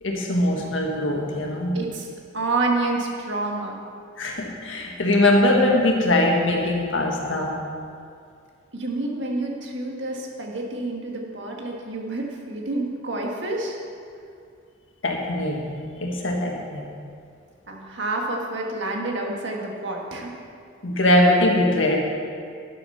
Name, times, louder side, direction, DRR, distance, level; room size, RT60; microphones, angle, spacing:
voice 1, 0.0-1.8 4.2-7.6 15.0-15.7 16.0-16.8 20.8-22.0, left 1 dB, 75° left, 0 dB, 1.7 m, -21 dB
voice 2, 1.7-2.1 2.3-3.7 8.7-13.8 17.7-20.3, right 2 dB, 65° right, 0 dB, 1.7 m, -28 dB
10.5 x 8.0 x 5.7 m, 2.4 s
head